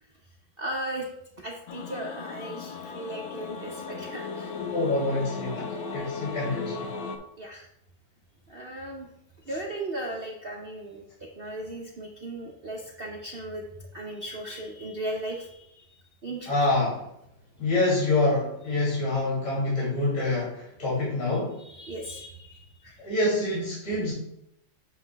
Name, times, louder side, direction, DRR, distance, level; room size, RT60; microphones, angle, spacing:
voice 1, 0.6-1.1 1.4-4.5 7.4-7.7 8.5-9.1 9.5-13.6 13.9-15.8 16.2-16.7 21.6-23.0, right 1 dB, 55° right, -1 dB, 0.6 m, -37 dB
sound 1, 1.7-7.2, left 4 dB, 90° left, 1.6 m, -36 dB
voice 2, 4.6-6.7 16.5-17.0 17.6-21.5 23.0-24.1, left 2 dB, 40° left, -8 dB, 3.0 m, -26 dB
8.1 x 7.2 x 2.3 m, 0.78 s
omnidirectional pair, 2.1 m